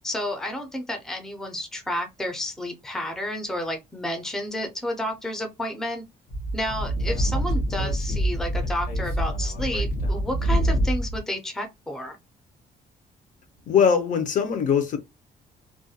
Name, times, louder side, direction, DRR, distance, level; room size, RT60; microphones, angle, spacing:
voice 1, 0.0-6.0 6.5-12.2, equal, 5° left, 0.5 m, -31 dB
Speech / Wind, 6.3-11.2, right 1 dB, 70° left, 0.9 m, -25 dB
voice 2, 13.7-15.0, left 7 dB, 55° left, 0.5 m, -21 dB
2.4 x 2.2 x 2.6 m
cardioid pair, 160°, 16 cm